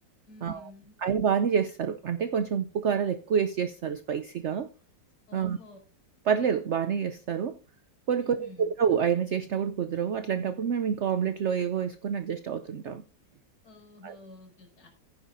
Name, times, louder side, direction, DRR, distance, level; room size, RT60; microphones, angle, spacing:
voice 1, 0.3-1.0 5.3-5.8 8.2-8.7 13.6-14.9, left 2 dB, 65° left, 5.5 m, -50 dB
voice 2, 1.0-4.7 5.3-5.6 6.3-7.6 8.1-13.0 14.0-14.2, right 7 dB, 80° right, 0.6 m, -28 dB
15.0 x 10.0 x 2.6 m
omnidirectional pair, 1.9 m